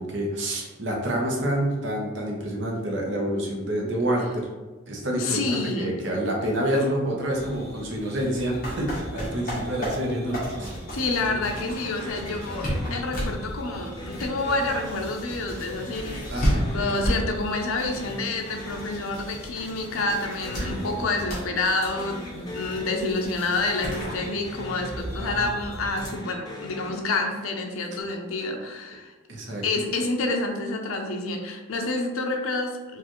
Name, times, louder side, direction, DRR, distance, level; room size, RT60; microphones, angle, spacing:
voice 1, 0.0-4.5 4.9-10.7 11.3-11.4 16.3-16.8 20.6-20.9 25.2-25.5 27.9-28.0 29.3-29.6, right 1 dB, 60° right, -1 dB, 0.8 m, -28 dB
voice 2, 5.2-6.0 10.9-29.1 29.6-33.0, left 2 dB, 85° left, 2 dB, 0.5 m, -28 dB
sound 1, 7.3-26.1, equal, 45° left, 1.3 m, -33 dB
sound 2, 12.0-13.5 14.0-15.5 15.9-17.7 18.0-19.5 19.8-21.5 21.9-23.7 23.9-25.5 25.9-27.7, left 1 dB, 20° left, 0.4 m, -41 dB
4.6 x 2.5 x 3.0 m, 1.2 s
head